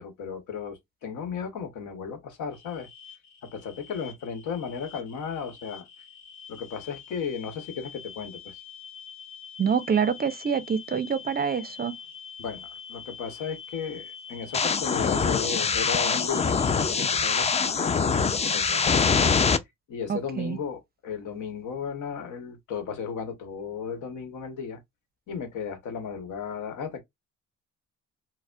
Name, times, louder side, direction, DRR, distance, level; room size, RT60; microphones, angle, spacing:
voice 1, 0.0-2.9 3.4-5.9 6.5-8.6 12.4-19.4 19.9-24.8 25.3-27.0, left 6 dB, 80° left, 1.1 m, -35 dB
sound 1, 2.5-17.0, left 6 dB, 60° left, 1.5 m, -45 dB
voice 2, 9.6-11.9 20.1-20.6, right 7 dB, 30° right, 0.5 m, -26 dB
sound 2, 14.5-19.6, left 5 dB, 20° left, 0.4 m, -24 dB
4.1 x 2.1 x 2.2 m
cardioid pair, 90°, 30 cm